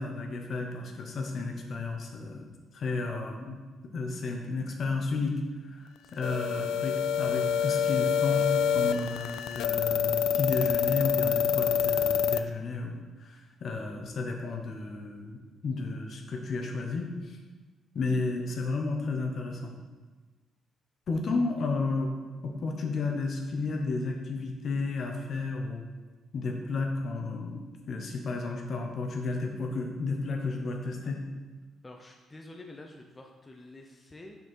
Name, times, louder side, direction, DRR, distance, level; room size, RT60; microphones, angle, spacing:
voice 1, 0.0-2.4 2.7-3.6 3.8-5.4 5.7-5.8 6.1-17.4 17.9-19.7 21.1-22.1 22.4-25.8 26.3-27.6 27.9-31.2, left 3 dB, 55° left, 2 dB, 1.2 m, -32 dB
voice 2, 6.0-6.7 21.6-21.7 28.4-28.6 31.8-34.4, left 2 dB, 20° left, 1 dB, 0.7 m, -49 dB
sound 1, 6.2-12.4, left 8 dB, 80° left, 0.3 m, -27 dB
6.5 x 5.8 x 4.5 m, 1.3 s
cardioid pair, 90°, 0 cm